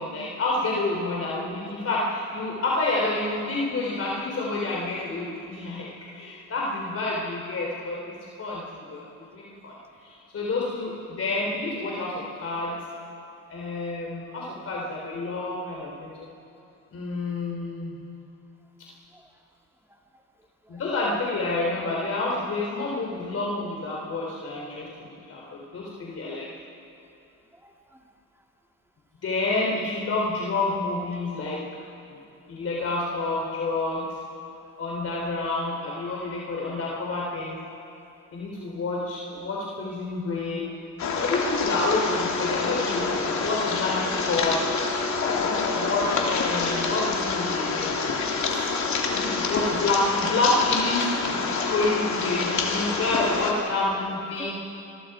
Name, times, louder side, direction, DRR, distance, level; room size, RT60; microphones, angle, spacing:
voice 1, 0.0-9.7 10.0-12.8 13.5-16.3 16.9-17.9 20.7-26.5 29.2-31.6 32.1-32.2 32.5-34.1 34.8-37.6 38.3-40.7 41.2-44.6 45.4-48.1 48.5-48.8 49.1-54.5, left 2 dB, 50° left, -3 dB, 3.6 m, -29 dB
voice 2, 19.9-20.2 20.6-20.8 25.4-25.5 27.5-28.0 43.3-43.4 44.2-44.3 48.9-49.2 51.6-51.7 54.4-54.5, right 1 dB, 10° right, 2 dB, 2.5 m, -48 dB
sound 1, 41.0-53.5, left 4 dB, 70° left, 3.1 m, -27 dB
25.5 x 22.5 x 4.9 m, 2.7 s
cardioid pair, 90°, 30 cm